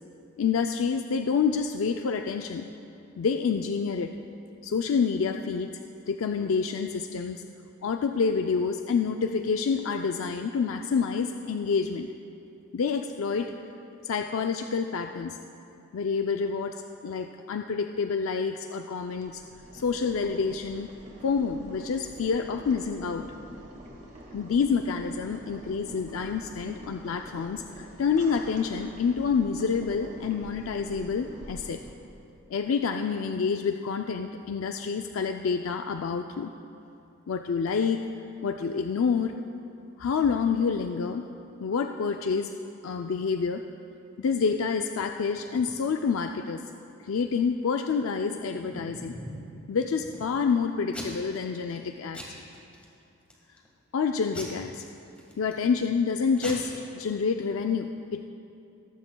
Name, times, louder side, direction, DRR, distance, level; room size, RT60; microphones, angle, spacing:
voice 1, 0.4-2.7 3.2-4.1 4.6-5.8 6.1-7.5 7.8-12.1 12.7-13.5 14.0-15.4 15.9-16.8 17.0-19.4 19.7-20.9 21.2-23.3 24.3-31.8 32.5-36.5 37.3-38.1 38.4-39.3 40.0-41.3 41.6-42.5 42.8-43.6 44.2-46.6 47.0-49.1 49.7-52.2 53.9-54.9 55.4-58.3, left 5 dB, 90° left, 5 dB, 0.4 m, -28 dB
Boiling, 19.2-31.9, right 1 dB, 40° right, 1.9 m, -46 dB
Packing tape duct tape / Tearing, 48.3-49.5 50.0-50.5 50.9-51.4 51.7-51.9 52.1-52.8 53.3-53.7 54.3-55.6 56.1-56.2 56.4-56.5, equal, 5° left, 1.5 m, -41 dB
18.5 x 14.5 x 2.3 m, 2.7 s
head